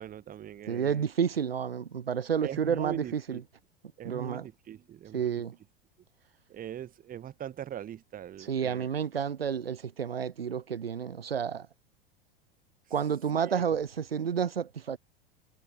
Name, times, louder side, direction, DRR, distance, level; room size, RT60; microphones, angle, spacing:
voice 1, 0.0-1.1 2.4-3.4 4.0-5.4 6.5-8.9 13.5-13.6, right 10 dB, 30° right, 1.5 m, -41 dB
voice 2, 0.7-3.4 4.0-4.5 5.1-5.5 8.4-11.7 12.9-15.0, right 7 dB, 85° right, 1.0 m, -30 dB
figure-of-eight pair, 85°, 29 cm